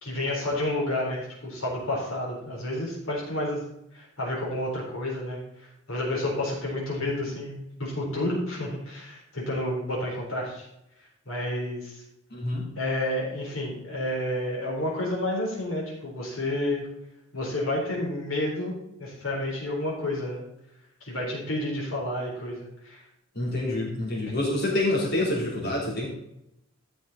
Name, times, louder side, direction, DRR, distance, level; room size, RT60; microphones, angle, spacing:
voice 1, 0.0-3.6 3.9-10.7 11.3-12.0 12.8-16.8 17.3-18.7 19.0-20.4 21.0-23.0, left 1 dB, 80° left, -3 dB, 3.7 m, -30 dB
voice 2, 12.3-12.7 23.4-26.1, left 1 dB, 50° left, -3 dB, 3.4 m, -27 dB
14.0 x 6.2 x 4.1 m, 0.81 s
head